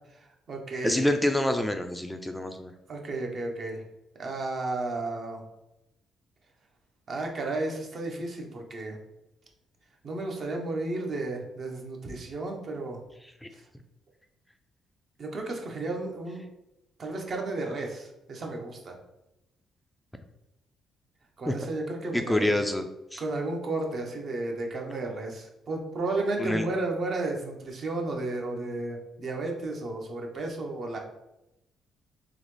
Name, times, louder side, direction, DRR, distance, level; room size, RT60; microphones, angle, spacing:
voice 1, 0.2-1.0 2.9-3.8 4.2-5.4 7.1-9.0 10.0-13.0 15.2-16.4 17.0-19.0 21.4-22.5 23.2-31.0, right 2 dB, 50° right, 1 dB, 0.9 m, -33 dB
voice 2, 0.8-2.7 13.4-13.5 21.5-21.6 22.1-22.8 23.1-23.2 26.4-26.6, left 1 dB, 5° left, 6 dB, 0.3 m, -26 dB
3.9 x 2.9 x 3.2 m, 0.89 s
cardioid pair, 90°, 0 cm